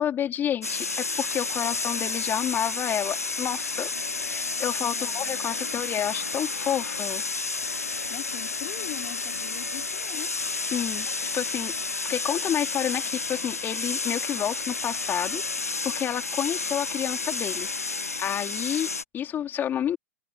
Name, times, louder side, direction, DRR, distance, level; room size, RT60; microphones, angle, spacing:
voice 1, 0.0-3.9 4.2-7.2 10.7-11.1 11.3-11.7 12.1-15.4 15.8-17.7 18.2-20.0, left 10 dB, 25° left, 4.3 m, -29 dB
sound 1, 0.6-19.0, left 3 dB, 90° left, 0.7 m, -31 dB
voice 2, 4.8-5.7 6.0-6.3 8.1-10.4, left 35 dB, 45° left, 3.2 m, -42 dB
figure-of-eight pair, 105°, 8 cm